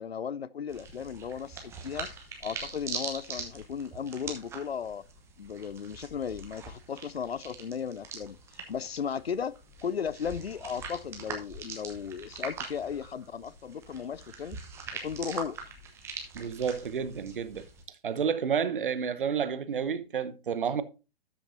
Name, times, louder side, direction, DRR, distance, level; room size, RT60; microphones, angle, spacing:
voice 1, 0.0-2.1 2.4-5.0 5.4-14.6 15.0-15.6, left 7 dB, 85° left, 0.5 m, -36 dB
sound 1, 0.7-17.8, right 5 dB, 10° right, 1.0 m, -43 dB
voice 2, 16.3-17.6 18.0-20.8, right 7 dB, 60° right, 0.9 m, -30 dB
13.0 x 6.1 x 2.6 m
figure-of-eight pair, 130°, 30 cm